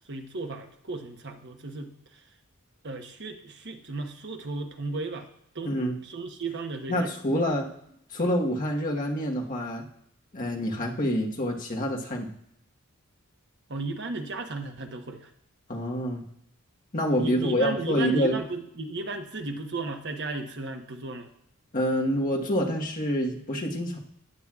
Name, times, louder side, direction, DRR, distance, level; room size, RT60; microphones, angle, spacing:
voice 1, 0.0-2.2 2.8-5.3 5.5-5.7 6.0-7.1 13.7-15.3 17.2-21.3, right 3 dB, 50° right, 4 dB, 1.0 m, -35 dB
voice 2, 5.6-6.0 6.9-7.7 8.1-9.8 10.3-12.3 15.7-16.2 16.9-18.4 21.7-24.0, equal, 40° left, 0 dB, 1.3 m, -27 dB
15.0 x 9.1 x 2.4 m, 0.73 s
head